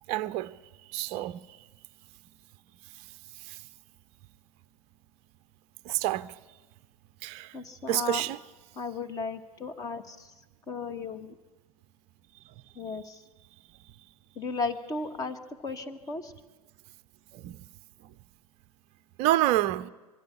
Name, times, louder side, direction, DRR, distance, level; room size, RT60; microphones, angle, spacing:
voice 1, 0.1-0.5 0.9-1.4 3.4-3.6 5.8-6.3 7.2-7.6 7.9-8.4 17.3-17.6 19.2-19.9, right 15 dB, 30° right, 0.6 m, -28 dB
voice 2, 7.5-8.3 8.7-10.3 10.7-11.3 12.7-13.2 14.3-16.3, left 4 dB, 20° left, 1.2 m, -35 dB
23.0 x 14.0 x 8.3 m
figure-of-eight pair, 105°, 20 cm